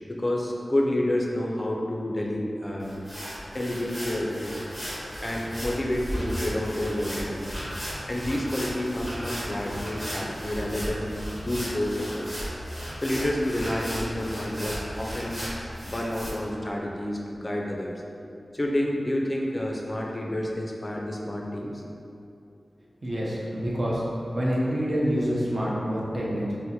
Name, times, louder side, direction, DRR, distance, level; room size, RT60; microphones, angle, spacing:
voice 1, 0.0-3.0 3.5-4.6 5.2-7.5 8.1-11.2 11.4-12.3 13.0-15.4 15.8-18.0 18.5-21.8, left 1 dB, 30° left, -1 dB, 0.4 m, -29 dB
sound 1, 2.8-16.3, equal, 10° right, 1.1 m, -35 dB
voice 2, 23.0-24.0 24.3-26.5, equal, 45° right, -6 dB, 0.6 m, -27 dB
4.2 x 2.1 x 2.7 m, 2.7 s
wide cardioid pair, 65°, 0 cm